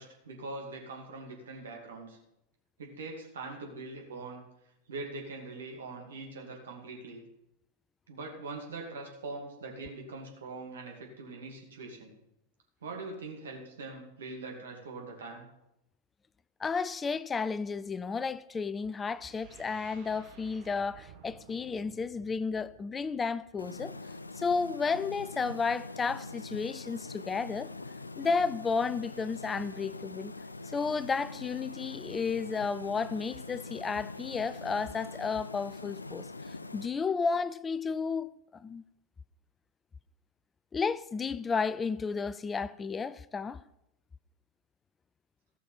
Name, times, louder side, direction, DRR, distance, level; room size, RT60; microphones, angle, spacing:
voice 1, 0.0-2.2 2.8-4.4 4.9-7.2 8.1-12.1 12.8-15.4, right 3 dB, 65° right, 2.6 m, -42 dB
voice 2, 16.6-23.9 24.4-27.7 28.2-30.3 30.7-36.3 36.7-38.8 40.7-43.6, left 5 dB, 15° left, 0.4 m, -32 dB
sound 1, 19.0-23.8, right 7 dB, 45° right, 1.7 m, -55 dB
sound 2, 23.6-36.9, left 3 dB, 80° left, 0.5 m, -43 dB
14.5 x 5.9 x 5.6 m
figure-of-eight pair, 90°, 0 cm